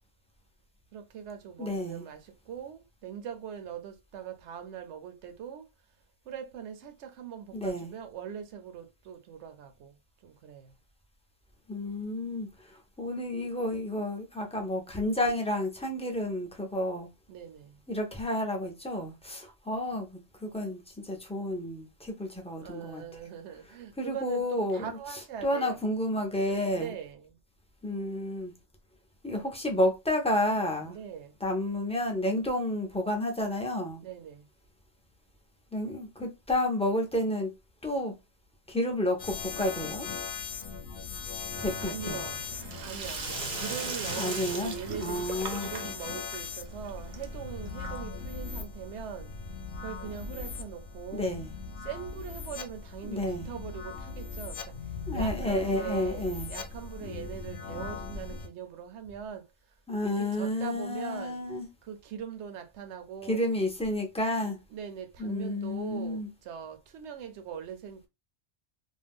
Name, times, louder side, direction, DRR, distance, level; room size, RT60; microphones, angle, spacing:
voice 1, 0.9-5.7 6.3-10.0 10.2-10.7 17.3-17.8 22.6-25.8 26.7-27.4 30.8-31.3 34.0-34.5 41.8-49.3 49.8-51.4 51.8-54.8 55.1-59.5 60.0-61.4 61.8-63.4 64.7-68.1, right 8 dB, 80° right, 0.9 m, -41 dB
voice 2, 1.6-2.0 7.5-7.9 11.7-17.1 17.9-23.0 24.0-24.9 25.4-26.9 27.8-28.5 29.2-31.0 31.4-34.0 35.7-37.5 37.8-38.1 38.7-40.1 41.6-42.2 44.2-45.7 51.1-51.5 53.0-53.5 55.1-56.5 59.9-61.7 63.3-64.6 65.2-66.3, left 1 dB, 10° left, 0.4 m, -31 dB
sound 1, 39.2-58.5, left 5 dB, 55° left, 0.7 m, -39 dB
Sink (filling or washing), 41.5-48.3, right 5 dB, 55° right, 0.6 m, -39 dB
2.6 x 2.2 x 3.4 m
omnidirectional pair, 1.2 m